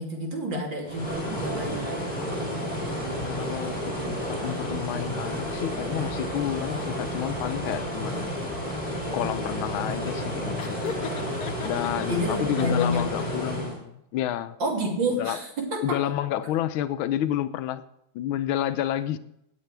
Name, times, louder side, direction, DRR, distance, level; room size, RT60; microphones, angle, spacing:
voice 1, 0.0-1.9 12.0-13.2 14.6-16.0, equal, 65° right, -1 dB, 3.5 m, -29 dB
sound 1, 0.8-13.8, equal, 25° left, 4.9 m, -31 dB
voice 2, 3.3-8.3 9.1-10.8 11.6-14.6 15.1-15.4 15.8-17.8 18.1-19.2, left 12 dB, 85° left, 12 dB, 1.5 m, -30 dB
Laughter, 10.6-12.1 12.5-13.4, left 6 dB, 60° left, 1.3 m, -37 dB
18.0 x 8.0 x 3.3 m, 0.78 s
omnidirectional pair, 2.2 m